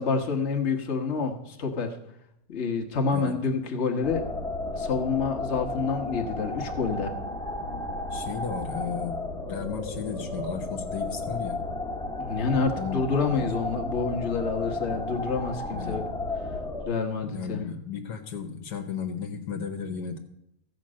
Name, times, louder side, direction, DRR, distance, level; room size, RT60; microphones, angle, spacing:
voice 1, 0.0-1.9 2.5-4.2 4.7-7.1 12.2-16.1 16.8-17.6, left 4 dB, 45° left, 2 dB, 1.5 m, -28 dB
sound 1, 4.0-16.9, left 2 dB, 5° left, 1.6 m, -33 dB
voice 2, 8.1-9.2 9.5-11.6 12.8-13.1 15.7-16.1 17.3-20.2, left 7 dB, 75° left, 6 dB, 1.5 m, -34 dB
14.5 x 5.2 x 7.5 m, 0.82 s
omnidirectional pair, 1.8 m